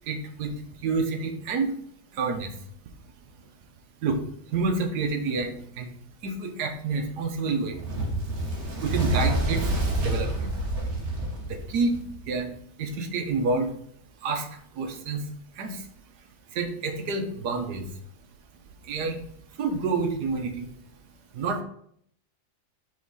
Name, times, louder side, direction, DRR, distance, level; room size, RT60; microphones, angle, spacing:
voice 1, 0.1-0.5 0.8-1.7 2.1-2.5 4.0-4.2 4.5-5.9 6.2-7.8 8.8-9.6 10.0-10.5 11.5-12.0 12.3-12.5 12.8-13.7 14.2-14.5 14.8-15.2 15.6-15.8 16.5-17.9 18.9-19.2 19.6-20.7 21.3-21.6, right 4 dB, 75° right, 5 dB, 1.4 m, -28 dB
Fire, 7.7-12.3, right 1 dB, 45° right, 1.3 m, -28 dB
5.3 x 4.4 x 4.0 m, 0.66 s
omnidirectional pair, 1.8 m